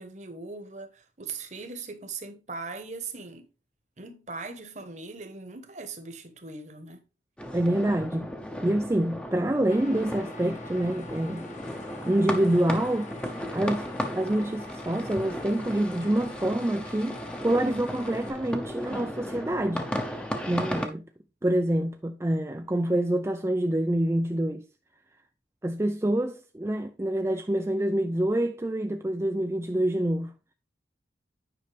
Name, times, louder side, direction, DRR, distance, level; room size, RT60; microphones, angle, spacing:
voice 1, 0.0-3.4 4.0-7.0, right 4 dB, 40° right, 1.1 m, -40 dB
sound 1, 7.4-20.9, equal, 5° left, 0.7 m, -35 dB
voice 2, 7.5-8.3 8.6-11.5 12.1-13.1 13.5-13.9 14.2-17.2 17.4-21.0 21.4-24.6 25.6-30.3, right 1 dB, 15° right, 0.4 m, -26 dB
sound 2, 9.7-18.3, left 3 dB, 40° left, 1.0 m, -46 dB
9.4 x 5.4 x 3.4 m
head